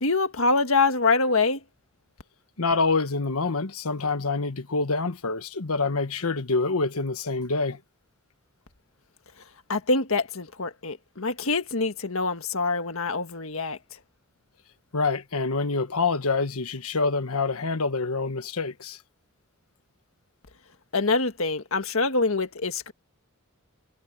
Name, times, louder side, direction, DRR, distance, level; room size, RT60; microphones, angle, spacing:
voice 1, 0.0-1.6 9.7-13.8 20.9-22.9, left 3 dB, 70° left, 1.7 m, -25 dB
voice 2, 2.6-7.8 14.9-19.0, left 3 dB, 90° left, 1.3 m, -26 dB
head